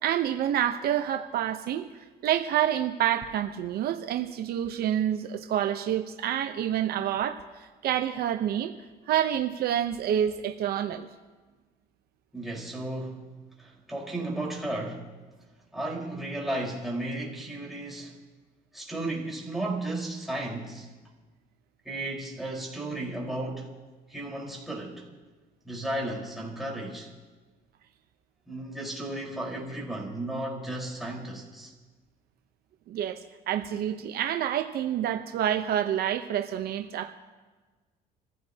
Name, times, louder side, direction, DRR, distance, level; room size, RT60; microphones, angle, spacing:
voice 1, 0.0-8.7 9.1-11.1 32.9-37.1, right 10 dB, 65° right, 6 dB, 0.9 m, -28 dB
voice 2, 12.3-13.3 13.6-15.1 15.7-18.2 18.7-20.9 21.8-23.7 24.1-25.1 25.6-27.1 28.5-31.7, right 1 dB, ahead, -4 dB, 4.6 m, -34 dB
27.0 x 15.5 x 2.9 m, 1.3 s
cardioid pair, 110°, 17 cm